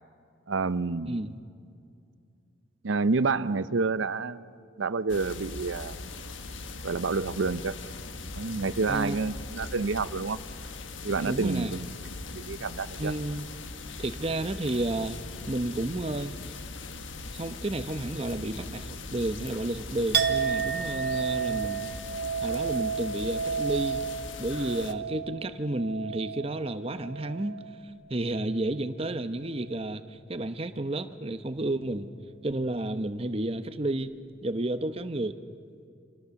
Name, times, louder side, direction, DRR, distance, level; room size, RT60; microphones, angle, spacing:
voice 1, 0.5-1.1 2.8-4.4 4.8-6.0 6.8-7.7 8.3-10.4 11.0-11.9 12.3-13.1, right 4 dB, 85° right, 15 dB, 0.7 m, -28 dB
voice 2, 1.1-1.4 8.9-9.2 11.3-11.7 13.0-13.4 14.0-15.2 15.5-16.4 17.3-21.9 22.4-24.1 24.4-27.6 28.1-32.1 32.4-35.4, right 1 dB, 30° right, 10 dB, 0.9 m, -31 dB
sound 1, 5.1-24.9, left 3 dB, 85° left, 1.4 m, -40 dB
Chink clink, 20.1-27.8 28.2-28.8, right 6 dB, 55° right, 1.2 m, -32 dB
28.5 x 25.5 x 7.1 m, 2.4 s
head